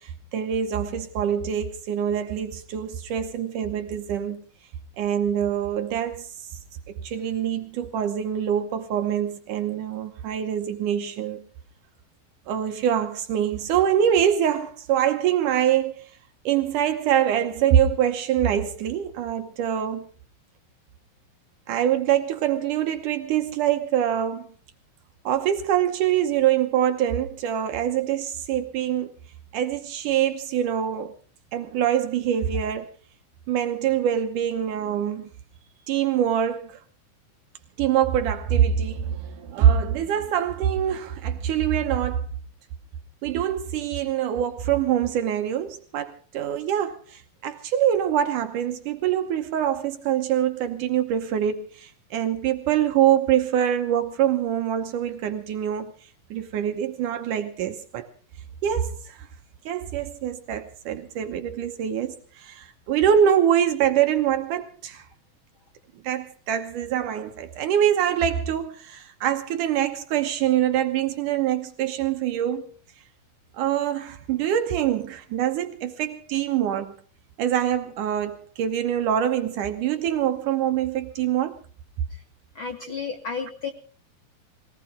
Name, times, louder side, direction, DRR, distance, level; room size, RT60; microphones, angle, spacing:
voice 1, 0.0-4.4 5.0-6.6 6.9-11.4 12.5-16.1 16.5-20.1 21.7-24.5 25.3-29.1 29.5-31.2 31.5-32.9 33.5-35.3 35.9-36.8 37.8-42.3 43.2-55.9 56.3-58.1 58.6-59.3 59.7-65.1 66.0-72.7 73.5-77.0 77.4-81.6, right 10 dB, 70° right, 2.2 m, -24 dB
voice 2, 82.5-83.7, left 5 dB, 70° left, 1.2 m, -32 dB
22.0 x 18.0 x 3.6 m
omnidirectional pair, 4.2 m